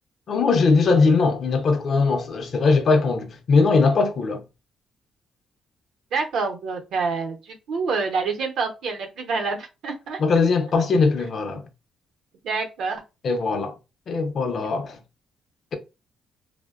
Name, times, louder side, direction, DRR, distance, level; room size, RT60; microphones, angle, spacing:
voice 1, 0.3-4.4 10.2-11.6 13.2-13.7 14.1-15.0, left 4 dB, 55° left, 0.5 m, -20 dB
voice 2, 6.1-10.2 12.4-13.0, right 4 dB, 75° right, 0.6 m, -27 dB
2.6 x 2.0 x 2.3 m
cardioid pair, 90°, 0 cm